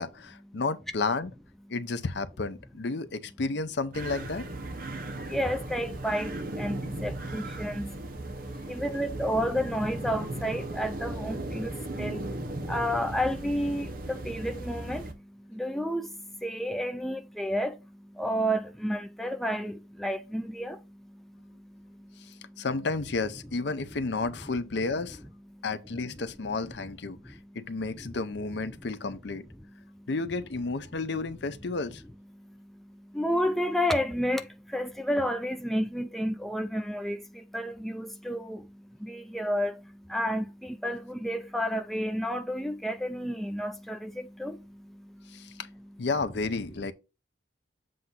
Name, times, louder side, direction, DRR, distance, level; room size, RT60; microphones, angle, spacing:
voice 1, 0.0-1.3 1.7-4.4 22.6-25.2 25.6-29.5 30.1-32.0 45.3-45.7 46.0-46.9, left 3 dB, 60° left, 0.6 m, -32 dB
sound 1, 3.9-15.1, right 2 dB, 45° right, 1.0 m, -37 dB
voice 2, 4.9-22.7 24.0-24.1 25.5-25.6 27.1-27.6 27.9-28.2 29.8-30.1 32.3-45.6 46.8-46.9, equal, ahead, 0.4 m, -32 dB
7.7 x 2.6 x 5.5 m
head